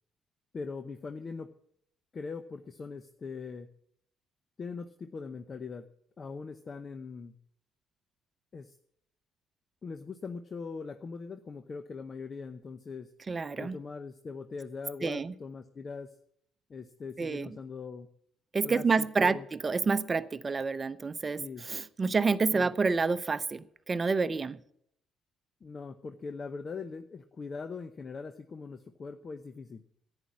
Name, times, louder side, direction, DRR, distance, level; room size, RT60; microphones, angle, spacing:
voice 1, 0.5-1.5 2.1-3.7 4.6-5.9 6.2-7.3 8.5-8.7 9.8-13.1 13.6-16.1 16.7-18.1 18.6-19.5 21.4-21.7 22.5-22.7 25.6-29.8, left 4 dB, 40° left, 0.8 m, -41 dB
voice 2, 13.3-13.8 15.0-15.3 17.2-17.5 18.5-24.6, right 4 dB, 35° right, 0.7 m, -29 dB
11.0 x 9.9 x 8.4 m
hypercardioid pair, 55°, 0 cm